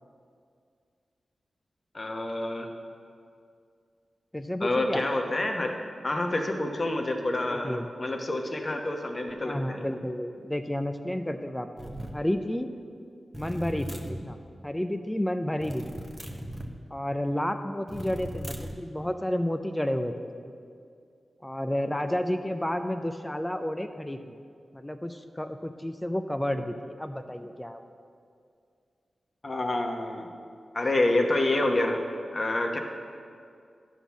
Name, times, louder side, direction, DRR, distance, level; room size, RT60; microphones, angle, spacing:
voice 1, 1.9-2.7 4.6-5.8 6.0-9.9 29.4-30.3 30.7-32.0 32.3-32.8, left 2 dB, 45° left, 3 dB, 1.1 m, -28 dB
voice 2, 4.3-5.0 7.5-7.9 9.4-12.7 13.4-14.4 14.6-16.0 16.9-20.3 21.4-24.3 24.7-27.8, left 1 dB, 15° left, 7 dB, 0.5 m, -31 dB
sound 1, 11.8-12.2 13.3-14.2 15.6-16.7 17.9-18.8, equal, 15° right, 1.0 m, -38 dB
11.0 x 3.8 x 7.2 m, 2.3 s
cardioid pair, 40°, 0 cm